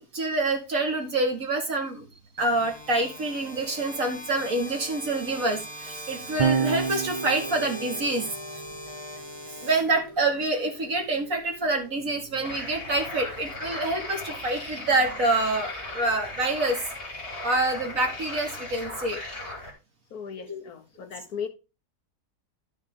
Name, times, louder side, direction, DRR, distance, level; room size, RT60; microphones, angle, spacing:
voice 1, 0.1-2.1 2.4-8.6 9.5-16.8 17.4-19.2 20.5-20.6, right 2 dB, 55° right, 2.7 m, -27 dB
sound 1, 2.4-10.4, equal, 5° left, 2.6 m, -41 dB
Electric guitar / Bass guitar, 6.4-12.8, right 5 dB, 25° right, 0.8 m, -32 dB
sound 2, 12.4-19.7, left 2 dB, 35° left, 3.1 m, -37 dB
voice 2, 20.1-21.5, left 7 dB, 75° left, 1.5 m, -37 dB
12.0 x 6.2 x 3.7 m
omnidirectional pair, 1.7 m